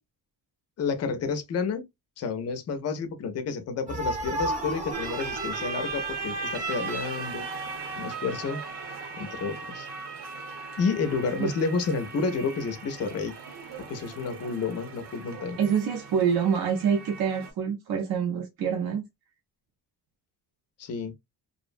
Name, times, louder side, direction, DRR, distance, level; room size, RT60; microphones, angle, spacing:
voice 1, 0.8-1.9 2.2-7.5 8.0-8.6 9.2-9.9 10.8-13.4 13.8-15.6 20.8-21.1, left 5 dB, 40° left, 0.4 m, -30 dB
sound 1, 3.9-7.3, right 1 dB, 20° right, 0.7 m, -34 dB
sound 2, 4.9-17.5, right 4 dB, 75° right, 0.9 m, -38 dB
voice 2, 15.6-19.1, right 7 dB, 55° right, 0.5 m, -26 dB
2.5 x 2.0 x 2.4 m
wide cardioid pair, 175°, 42 cm